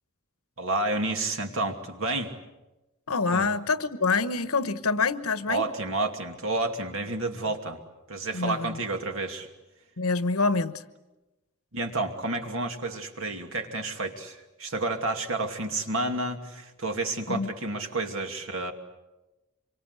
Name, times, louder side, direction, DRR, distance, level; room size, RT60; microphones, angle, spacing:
voice 1, 0.6-2.3 3.3-3.5 5.5-7.8 8.1-9.5 11.7-18.7, right 2 dB, 65° right, 2.6 m, -30 dB
voice 2, 3.1-5.6 8.3-8.8 10.0-10.8 17.3-17.5, left 4 dB, 85° left, 1.1 m, -26 dB
26.0 x 24.0 x 8.3 m
head